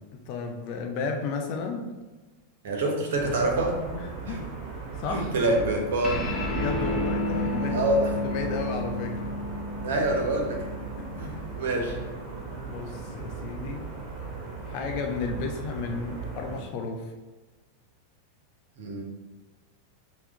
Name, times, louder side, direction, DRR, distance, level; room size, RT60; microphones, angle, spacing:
voice 1, 0.1-1.9 3.9-4.4 5.0-5.3 6.5-7.9 8.2-9.3 11.0-11.4 11.7-12.1 12.6-13.9 14.7-17.1, left 4 dB, 45° left, 4 dB, 0.6 m, -33 dB
voice 2, 2.6-3.8 4.3-4.4 5.1-6.2 7.7-8.1 9.8-10.7 11.2-11.9 18.8-19.0, right 2 dB, 55° right, 1 dB, 0.9 m, -26 dB
sound 1, 3.1-16.6, right 4 dB, 30° right, 1.1 m, -38 dB
sound 2, 6.0-12.8, left 2 dB, 15° left, 0.9 m, -32 dB
5.8 x 2.3 x 3.9 m, 1.2 s
figure-of-eight pair, 90°, 0 cm